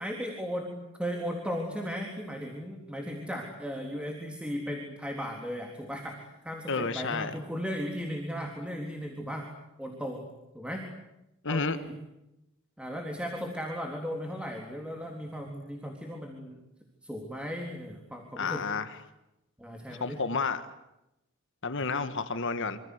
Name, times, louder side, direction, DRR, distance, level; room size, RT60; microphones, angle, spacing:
voice 1, 0.0-9.5 9.8-10.2 10.5-10.8 11.5-12.0 12.8-16.6 17.0-18.6 19.6-20.2, equal, 5° right, 2 dB, 3.7 m, -36 dB
voice 2, 6.7-7.3 11.4-11.8 18.4-18.9 19.9-20.6 21.6-22.8, left 4 dB, 65° left, 10 dB, 1.7 m, -30 dB
27.0 x 26.5 x 8.3 m, 0.90 s
head